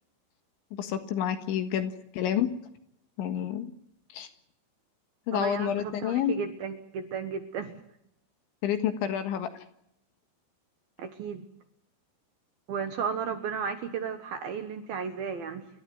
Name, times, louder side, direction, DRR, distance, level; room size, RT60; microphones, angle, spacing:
voice 1, 0.7-2.5 3.2-3.7 4.1-4.3 5.3-6.3 8.6-9.6, left 10 dB, 70° left, 8 dB, 3.8 m, -29 dB
voice 2, 5.3-7.8 11.0-11.5 12.7-15.7, right 6 dB, 70° right, 8 dB, 2.4 m, -34 dB
28.5 x 13.0 x 9.3 m, 0.76 s
omnidirectional pair, 5.9 m